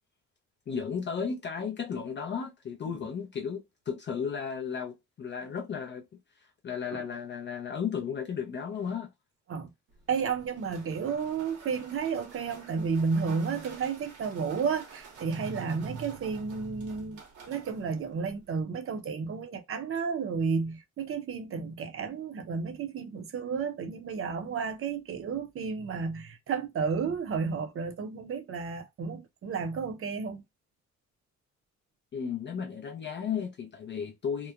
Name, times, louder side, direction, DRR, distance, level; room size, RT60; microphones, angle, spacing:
voice 1, 0.7-6.1 6.6-9.1 32.1-34.5, left 6 dB, 35° left, 0.4 m, -34 dB
sound 1, 9.9-18.6, right 5 dB, 75° right, 1.1 m, -51 dB
voice 2, 10.1-30.4, right 5 dB, 45° right, 0.7 m, -32 dB
2.9 x 2.0 x 2.3 m
cardioid pair, 90°, 30 cm